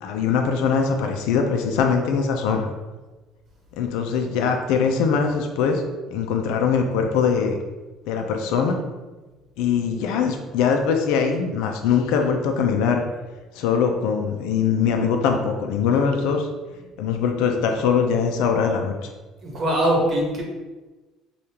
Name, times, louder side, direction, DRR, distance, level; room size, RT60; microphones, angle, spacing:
voice 1, 0.0-2.7 3.8-5.8 6.1-7.6 8.1-8.8 9.6-13.0 13.5-16.5 17.0-19.1, left 6 dB, 85° left, 4 dB, 0.4 m, -22 dB
voice 2, 19.4-20.4, right 1 dB, 40° right, -2 dB, 1.0 m, -21 dB
5.0 x 2.4 x 2.8 m, 1.2 s
cardioid pair, 140°, 0 cm